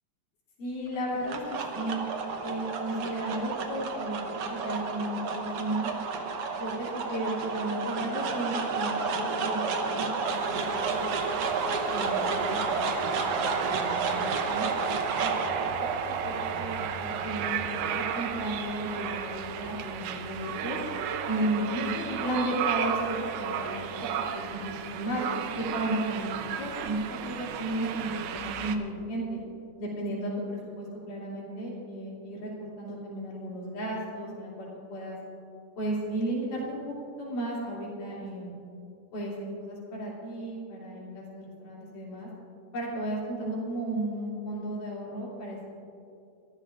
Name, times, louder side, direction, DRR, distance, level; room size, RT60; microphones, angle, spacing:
voice 1, 0.6-1.4 1.7-2.0 2.4-5.9 6.5-9.6 10.0-10.5 10.9-11.1 11.9-12.8 13.1-14.7 15.2-15.9 16.2-20.8 21.3-23.8 24.2-25.2 25.5-29.4 29.8-35.2 35.8-38.5 39.1-42.3 42.7-45.7, right 1 dB, 75° left, -6 dB, 4.4 m, -34 dB
sound 1, 1.0-19.3, right 4 dB, 65° right, 1.6 m, -31 dB
sound 2, 10.3-28.8, right 8 dB, 90° right, 2.3 m, -34 dB
24.5 x 13.5 x 2.5 m, 2.6 s
omnidirectional pair, 3.8 m